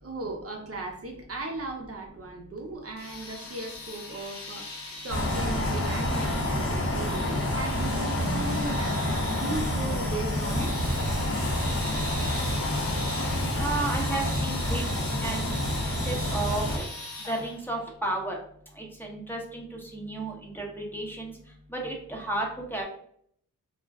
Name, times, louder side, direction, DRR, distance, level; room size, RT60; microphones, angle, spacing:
voice 1, 0.0-10.8 14.1-14.3, right 2 dB, 45° right, 1 dB, 0.6 m, -37 dB
sound 1, 3.0-17.7, left 1 dB, 75° left, 0.9 m, -40 dB
sound 2, 5.1-16.8, left 1 dB, 40° left, 0.7 m, -28 dB
voice 2, 13.6-14.8 15.2-15.5 15.8-16.9 17.3-18.3 18.8-21.3 21.7-22.8, right 2 dB, 5° left, -1 dB, 0.7 m, -33 dB
2.4 x 2.1 x 3.4 m, 0.63 s
wide cardioid pair, 90°, 34 cm